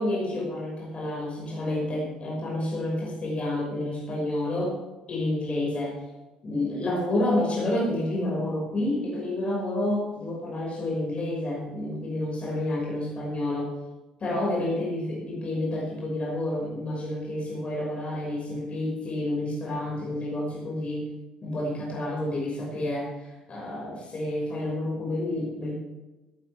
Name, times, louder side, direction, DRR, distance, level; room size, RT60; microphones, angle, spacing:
voice 1, 0.0-4.8 5.1-6.0 6.4-13.7 14.2-21.1 21.4-25.7, left 1 dB, 35° left, -3 dB, 6.2 m, -29 dB
16.0 x 14.0 x 3.6 m, 1.1 s
figure-of-eight pair, 50°, 4 cm